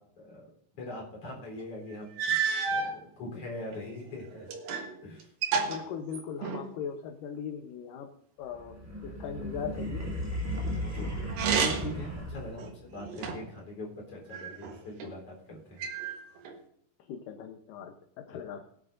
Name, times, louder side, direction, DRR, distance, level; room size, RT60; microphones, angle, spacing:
voice 1, 0.2-0.5 0.8-4.5 5.0-5.3 10.8-15.8, left 2 dB, 40° left, -1 dB, 4.8 m, -42 dB
sound 1, 1.6-1.7 2.2-2.9 3.7-4.9 5.2-6.7 11.3-12.0 12.6-13.6 14.3-15.1 15.8-16.6, right 6 dB, 70° right, 3.1 m, -31 dB
voice 2, 5.6-8.1 8.4-8.8 9.0-10.1 17.1-18.6, left 7 dB, 70° left, 4 dB, 2.4 m, -39 dB
sound 2, 8.6-12.8, equal, 5° right, 2.1 m, -35 dB
21.0 x 10.0 x 2.6 m, 0.67 s
omnidirectional pair, 4.3 m